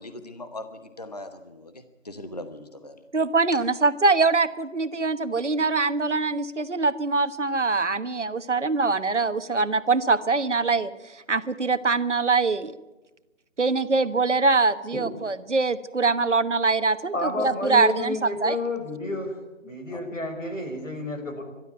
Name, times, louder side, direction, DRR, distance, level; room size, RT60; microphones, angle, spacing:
voice 1, 0.0-3.0 19.9-20.0, left 1 dB, 30° left, 9 dB, 1.0 m, -40 dB
voice 2, 3.1-10.9 11.3-12.7 13.6-18.1 18.4-18.6, right 4 dB, 70° right, 11 dB, 1.3 m, -23 dB
voice 3, 17.1-19.4 19.6-21.4, left 2 dB, 90° left, 4 dB, 5.5 m, -30 dB
23.0 x 12.5 x 9.4 m, 1.1 s
figure-of-eight pair, 175°, 37 cm